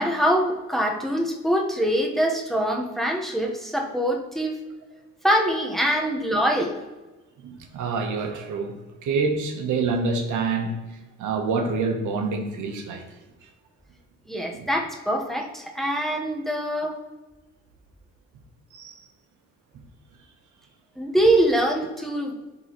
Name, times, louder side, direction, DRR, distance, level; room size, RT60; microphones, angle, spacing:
voice 1, 0.0-4.5 5.2-6.7 14.3-17.0 21.0-22.3, right 1 dB, ahead, 0 dB, 1.1 m, -24 dB
voice 2, 7.4-10.7 11.2-13.0 14.5-14.7 18.7-19.0, right 4 dB, 80° right, 4 dB, 1.1 m, -27 dB
11.0 x 3.9 x 3.1 m, 1.2 s
cardioid pair, 90°, 30 cm